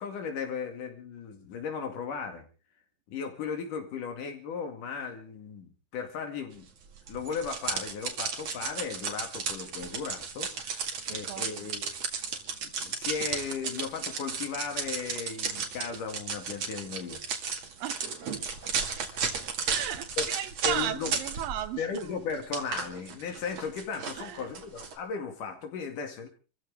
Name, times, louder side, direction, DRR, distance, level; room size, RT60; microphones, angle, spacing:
voice 1, 0.0-2.5 3.1-6.7 7.1-11.9 12.6-17.3 20.2-20.3 20.6-21.1 21.8-26.3, left 5 dB, 70° left, 3.8 m, -36 dB
sound 1, 7.1-21.7 21.9-25.0, right 5 dB, 55° right, 3.1 m, -34 dB
voice 2, 11.1-11.7 17.8-18.5 19.7-22.1 24.2-24.5, right 12 dB, 85° right, 2.7 m, -36 dB
27.0 x 15.0 x 3.6 m
omnidirectional pair, 3.9 m